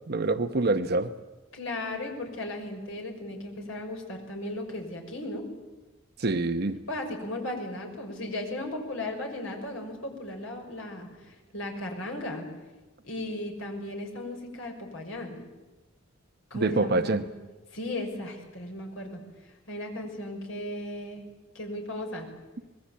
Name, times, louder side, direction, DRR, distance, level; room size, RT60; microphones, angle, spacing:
voice 1, 0.1-1.1 6.2-6.8 16.5-17.2, right 2 dB, 55° right, 8 dB, 0.9 m, -25 dB
voice 2, 1.5-5.5 6.9-12.5 13.0-15.4 16.5-17.3 17.7-21.3 21.5-22.3, left 1 dB, 75° left, 3 dB, 6.1 m, -36 dB
25.0 x 21.0 x 8.5 m, 1.2 s
head